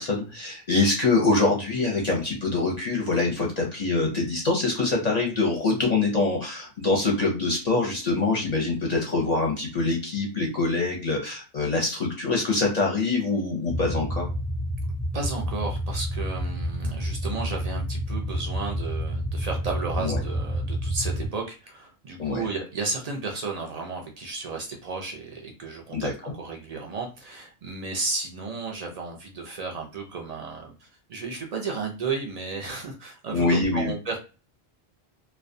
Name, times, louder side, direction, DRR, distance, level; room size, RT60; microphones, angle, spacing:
voice 1, 0.0-14.3 20.0-20.2 22.2-22.5 25.9-26.1 33.3-33.9, left 3 dB, 45° left, -1 dB, 0.6 m, -24 dB
sound 1, 13.7-21.3, equal, 5° left, 0.7 m, -29 dB
voice 2, 15.1-34.2, right 4 dB, 55° right, 1 dB, 0.4 m, -33 dB
2.3 x 2.1 x 2.5 m, 0.32 s
omnidirectional pair, 1.1 m